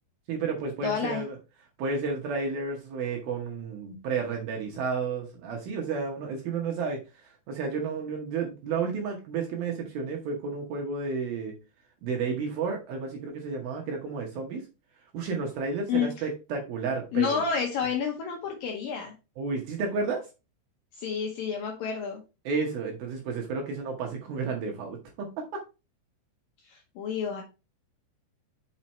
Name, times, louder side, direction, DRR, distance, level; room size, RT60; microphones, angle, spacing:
voice 1, 0.3-1.4 1.8-11.5 12.0-14.6 15.1-17.4 19.4-20.2 22.5-25.6, right 4 dB, 70° right, 1 dB, 2.5 m, -32 dB
voice 2, 0.8-1.2 15.9-16.2 17.1-19.1 20.9-22.2 26.6-27.4, left 6 dB, 75° left, 2 dB, 2.0 m, -29 dB
5.8 x 5.5 x 4.2 m, 0.29 s
omnidirectional pair, 5.2 m